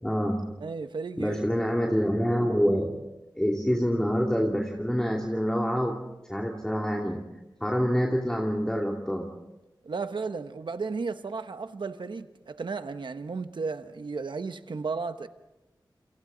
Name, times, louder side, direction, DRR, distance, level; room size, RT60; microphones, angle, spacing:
voice 1, 0.0-0.5 1.2-3.0 3.4-6.0 6.3-7.3 7.6-9.3, equal, 10° left, 2.6 m, -26 dB
voice 2, 0.6-1.4 9.8-15.3, right 4 dB, 80° right, 1.1 m, -34 dB
29.0 x 27.0 x 4.0 m
wide cardioid pair, 70°, 8 cm